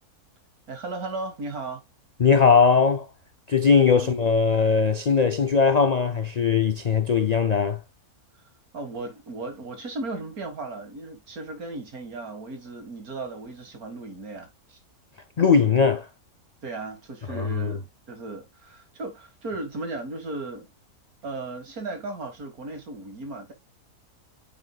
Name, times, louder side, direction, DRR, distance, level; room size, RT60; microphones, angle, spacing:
voice 1, 0.7-1.9 3.9-4.2 8.7-14.8 16.6-20.7 21.2-23.5, right 2 dB, 70° right, 2.3 m, -36 dB
voice 2, 2.2-3.1 3.5-7.8 15.4-16.1 17.3-17.8, left 5 dB, 75° left, 0.3 m, -20 dB
8.3 x 5.2 x 2.4 m
omnidirectional pair, 1.6 m